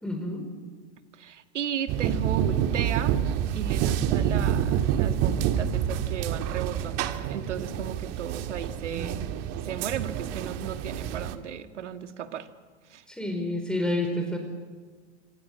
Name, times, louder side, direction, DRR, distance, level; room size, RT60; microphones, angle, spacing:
voice 1, 0.0-0.5 13.1-14.4, left 1 dB, ahead, 4 dB, 4.7 m, -29 dB
voice 2, 1.1-3.2 3.5-9.3 9.6-12.5 12.9-13.0, right 8 dB, 85° right, 9 dB, 1.9 m, -35 dB
sound 1, 1.9-11.4, right 9 dB, 45° right, 1.9 m, -27 dB
26.0 x 25.5 x 8.7 m, 1.4 s
hypercardioid pair, 115°, 35 cm